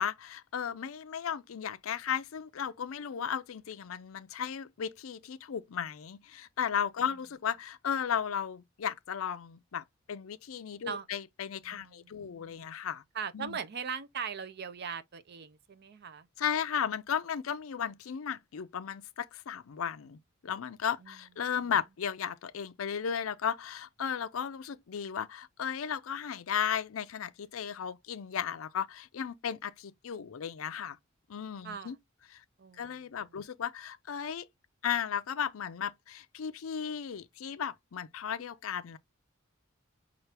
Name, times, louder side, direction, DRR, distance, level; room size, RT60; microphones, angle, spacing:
voice 1, 0.0-13.0 13.3-13.6 16.4-31.0 31.3-32.0 32.3-32.4 32.8-34.5 34.8-39.0, left 8 dB, 80° left, 0.5 m, -35 dB
voice 2, 11.7-12.6 13.1-16.3 21.0-21.1 31.6-31.9 32.6-32.9, right 6 dB, 50° right, 0.6 m, -40 dB
5.8 x 2.4 x 3.3 m
head